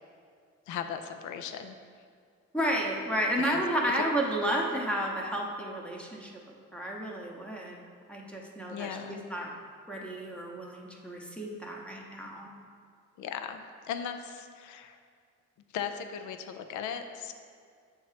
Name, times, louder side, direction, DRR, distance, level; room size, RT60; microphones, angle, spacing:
voice 1, 0.7-1.8 3.4-3.6 8.7-9.2 13.2-13.6 13.9-15.0 15.7-17.3, left 8 dB, 75° left, 7 dB, 0.5 m, -37 dB
voice 2, 2.5-6.3 6.7-7.8 8.1-9.5 9.9-12.5, equal, 5° left, -2 dB, 0.8 m, -32 dB
6.9 x 2.8 x 4.9 m, 2.2 s
cardioid pair, 90°, 30 cm